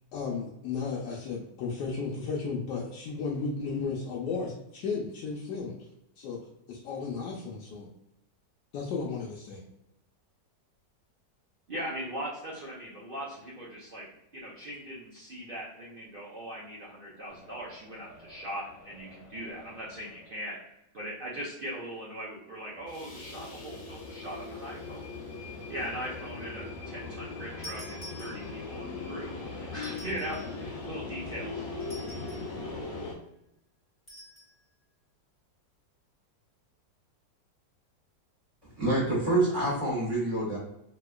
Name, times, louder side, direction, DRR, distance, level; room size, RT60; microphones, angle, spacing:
voice 1, 0.1-5.7 6.2-6.4 6.7-7.9 8.7-9.6, left 4 dB, 80° left, -3 dB, 1.2 m, -34 dB
voice 2, 11.7-14.1 14.3-20.6 20.9-25.1 25.7-31.7, equal, 65° right, -6 dB, 0.5 m, -40 dB
sound 1, 17.3-20.4 22.8-33.1, left 3 dB, 55° left, 0.7 m, -40 dB
sound 2, 27.6-28.8 29.7-30.6 31.8-32.6 34.1-34.5, equal, 30° left, 1.2 m, -47 dB
voice 3, 38.8-40.6, right 2 dB, 15° right, -6 dB, 1.3 m, -26 dB
3.5 x 2.9 x 2.3 m, 0.82 s
omnidirectional pair, 1.9 m